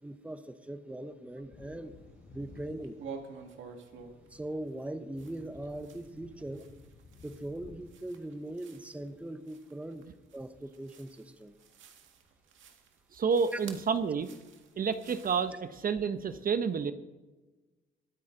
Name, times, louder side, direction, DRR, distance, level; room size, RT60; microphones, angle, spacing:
voice 1, 0.0-2.0 2.3-3.0 4.3-6.7 7.2-11.5 13.5-13.6, right 1 dB, 5° right, 10 dB, 0.9 m, -40 dB
Wind / Thunder, 1.3-9.5 9.8-9.9, left 3 dB, 50° left, 5.2 m, -56 dB
sound 1, 1.6-2.4 2.7-15.5, right 5 dB, 75° right, 1.8 m, -51 dB
voice 2, 13.1-14.3 14.8-16.9, right 6 dB, 45° right, 10 dB, 0.8 m, -29 dB
23.0 x 8.9 x 3.8 m, 1.2 s
cardioid pair, 90°, 20 cm